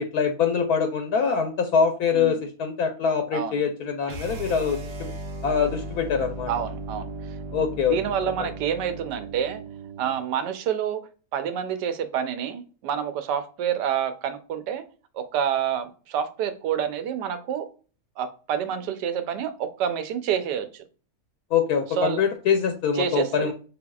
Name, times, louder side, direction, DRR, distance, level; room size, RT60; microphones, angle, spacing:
voice 1, 0.0-5.1 5.4-6.5 7.5-8.0 21.5-23.5, left 6 dB, 70° left, 6 dB, 1.1 m, -24 dB
sound 1, 4.0-10.2, right 2 dB, 55° right, 0.7 m, -36 dB
voice 2, 6.5-9.6 10.0-11.0 11.3-14.8 15.1-17.7 18.2-20.8 22.0-22.2 22.9-23.5, right 8 dB, 85° right, 10 dB, 1.2 m, -28 dB
5.3 x 3.4 x 2.3 m, 0.38 s
omnidirectional pair, 1.8 m